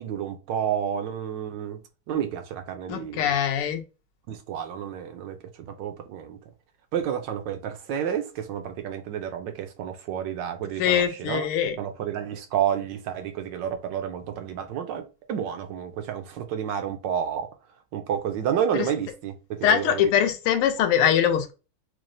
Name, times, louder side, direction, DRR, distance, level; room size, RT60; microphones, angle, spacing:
voice 1, 0.0-1.8 2.1-3.3 4.3-6.4 6.9-11.5 11.8-17.5 17.9-20.1, right 9 dB, 70° right, 1.1 m, -30 dB
voice 2, 2.9-3.8 10.8-11.7 18.7-18.8 19.6-21.5, left 9 dB, 85° left, 1.6 m, -22 dB
6.1 x 2.1 x 2.5 m
omnidirectional pair, 2.4 m